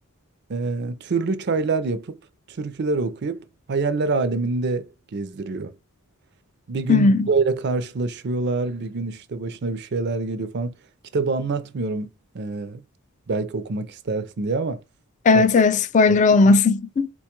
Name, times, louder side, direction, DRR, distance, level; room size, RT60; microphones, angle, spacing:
voice 1, 0.5-2.1 2.5-5.7 6.7-10.8 11.1-12.1 12.3-12.8 13.3-14.8 15.3-15.5 16.1-16.2 16.4-16.6, right 3 dB, 50° right, 0.4 m, -26 dB
voice 2, 6.9-7.3 15.3-17.1, left 3 dB, 35° left, 0.3 m, -16 dB
4.3 x 2.2 x 2.9 m
head